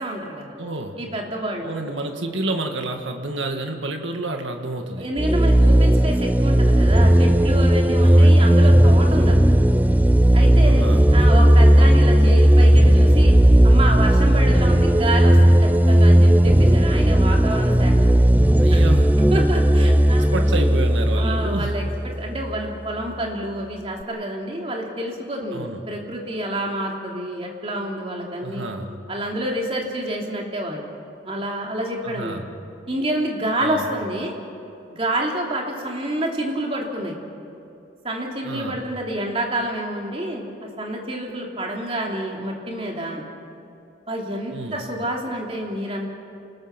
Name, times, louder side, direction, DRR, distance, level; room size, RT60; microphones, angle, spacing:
voice 1, 0.0-0.5 1.0-1.7 5.0-9.6 10.3-13.4 13.6-18.2 18.7-18.8 19.3-20.3 21.1-21.9 22.2-28.7 29.1-30.9 31.2-32.4 32.9-34.3 34.9-37.2 38.0-43.2 44.1-46.1, right 1 dB, 30° right, 0 dB, 3.0 m, -28 dB
voice 2, 0.6-1.0 1.6-5.1 8.0-8.5 10.6-11.0 18.6-19.2 20.3-21.8 25.5-25.8 28.4-28.9 32.0-32.5 33.5-33.8 38.4-38.8 44.5-44.8, right 2 dB, 75° right, 4 dB, 1.8 m, -29 dB
sound 1, 5.2-22.6, right 1 dB, 10° right, 0.5 m, -15 dB
28.0 x 20.5 x 6.0 m, 2.7 s
head